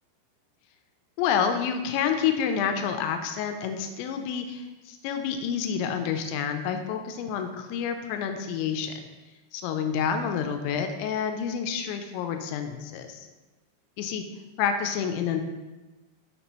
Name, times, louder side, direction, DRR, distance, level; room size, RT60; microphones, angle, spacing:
voice 1, 1.2-8.9 9.5-13.3 14.0-14.2 14.6-15.4, left 7 dB, 90° left, 6 dB, 2.9 m, -28 dB
6.9 x 6.4 x 3.0 m, 1.1 s
omnidirectional pair, 5.1 m